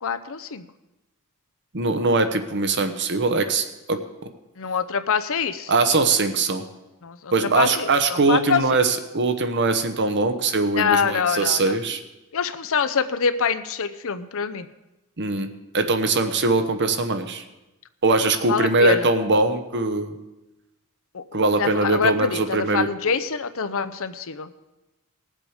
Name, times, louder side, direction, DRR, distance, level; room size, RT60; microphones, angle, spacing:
voice 1, 0.0-0.7 4.6-5.7 7.0-8.8 10.8-11.8 12.3-14.7 18.5-19.1 21.1-24.5, left 6 dB, 65° left, 12 dB, 0.7 m, -25 dB
voice 2, 1.7-4.0 5.7-6.6 7.3-12.0 15.2-15.5 15.7-17.4 18.0-20.2 21.3-22.9, right 3 dB, 55° right, 8 dB, 1.1 m, -21 dB
19.5 x 7.6 x 5.0 m, 1.0 s
head